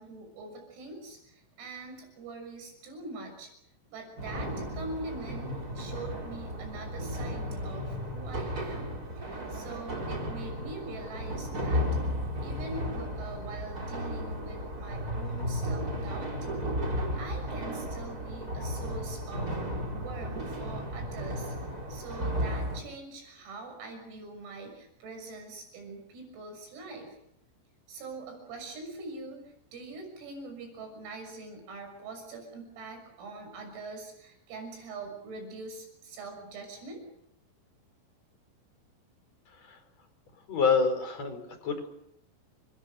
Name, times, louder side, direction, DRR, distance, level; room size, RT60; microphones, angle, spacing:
voice 1, 0.0-3.5 3.9-12.0 12.4-16.3 17.1-19.6 19.9-27.2 27.9-37.0, right 3 dB, 85° right, 5 dB, 9.2 m, -43 dB
sound 1, 4.2-22.8, equal, 20° right, 4.0 m, -34 dB
voice 2, 40.5-41.9, left 5 dB, 30° left, 5 dB, 5.6 m, -27 dB
29.5 x 22.5 x 6.5 m, 0.76 s
omnidirectional pair, 6.0 m